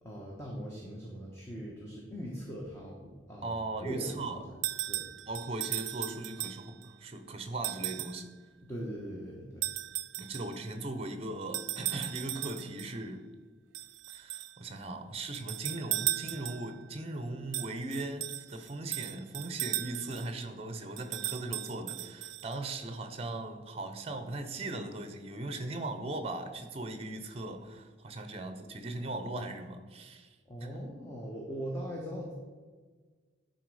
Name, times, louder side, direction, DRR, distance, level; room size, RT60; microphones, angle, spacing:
voice 1, 0.0-3.5 3.8-4.4 4.9-5.1 8.6-9.7 30.5-32.3, equal, 15° left, -3 dB, 1.1 m, -40 dB
voice 2, 3.4-4.4 5.3-8.3 10.2-13.2 14.1-30.7, right 2 dB, 30° right, 8 dB, 0.7 m, -39 dB
sound 1, 4.6-6.9 7.6-8.2 9.6-10.6 11.5-12.9 13.7-14.6 15.3-16.8 17.5-20.3 21.0-22.7, right 16 dB, 75° right, 0.4 m, -37 dB
10.0 x 4.1 x 4.8 m, 1.4 s
head